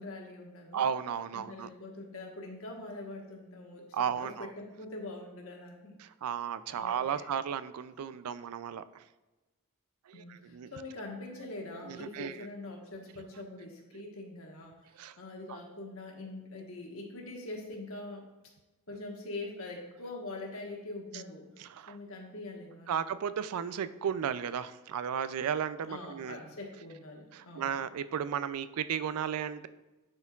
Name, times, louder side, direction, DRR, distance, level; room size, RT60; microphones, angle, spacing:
voice 1, 0.0-0.8 1.3-5.9 6.7-7.3 10.1-14.8 15.2-18.3 18.9-21.5 21.9-23.0 25.8-27.8, left 2 dB, 65° left, 1 dB, 1.3 m, -43 dB
voice 2, 0.7-1.7 3.9-4.5 6.0-9.0 10.1-10.2 10.5-10.7 11.9-12.3 15.0-15.1 15.5-15.6 21.6-22.0 22.9-26.4 27.3-29.7, right 8 dB, 90° right, 14 dB, 0.4 m, -34 dB
10.5 x 4.4 x 2.4 m, 1.1 s
head